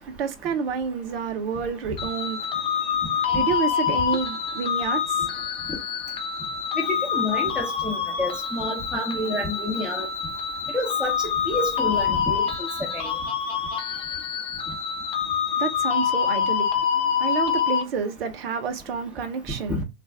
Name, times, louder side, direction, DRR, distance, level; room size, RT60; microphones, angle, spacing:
voice 1, 0.0-5.5 15.5-19.8, right 6 dB, 60° right, 0.8 m, -30 dB
sound 1, 2.0-17.8, left 7 dB, 15° left, 0.5 m, -26 dB
voice 2, 6.8-10.1 10.7-11.1 11.4-12.4 12.9-13.1 19.7-19.8, left 1 dB, 5° right, 1.1 m, -28 dB
4.2 x 2.5 x 3.4 m
figure-of-eight pair, 95°, 33 cm